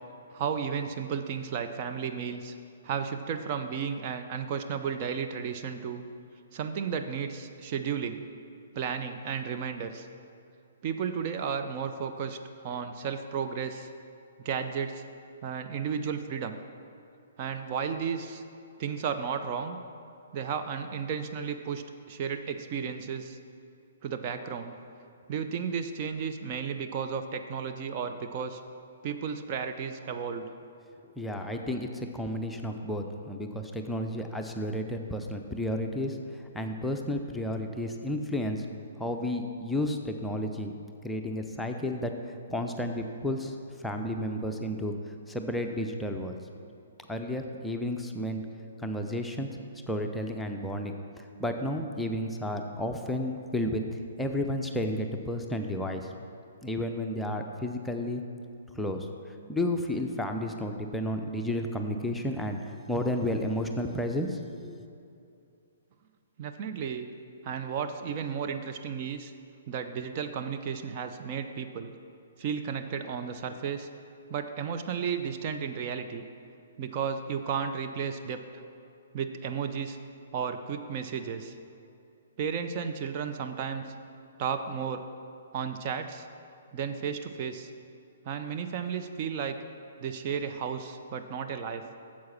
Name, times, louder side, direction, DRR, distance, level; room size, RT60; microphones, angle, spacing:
voice 1, 0.3-2.5 2.8-6.0 6.5-8.2 8.7-10.1 10.8-13.9 14.4-15.0 15.4-16.6 17.4-18.4 18.8-19.8 20.3-23.4 24.0-24.7 25.3-28.6 29.0-30.5 66.4-67.1 67.4-69.3 69.7-71.9 72.4-73.9 74.3-76.2 76.8-78.4 79.1-80.0 80.3-81.5 82.4-83.9 84.4-85.0 85.5-86.3 86.7-87.7 88.2-89.6 90.0-91.8, right 7 dB, 35° right, 7 dB, 0.5 m, -33 dB
voice 2, 31.2-38.6 39.0-40.7 41.0-46.4 47.1-48.4 48.8-49.5 49.9-56.1 56.6-58.2 58.8-64.8, left 1 dB, 5° left, 3 dB, 0.6 m, -32 dB
9.4 x 7.3 x 5.9 m, 2.5 s
figure-of-eight pair, 120°, 0 cm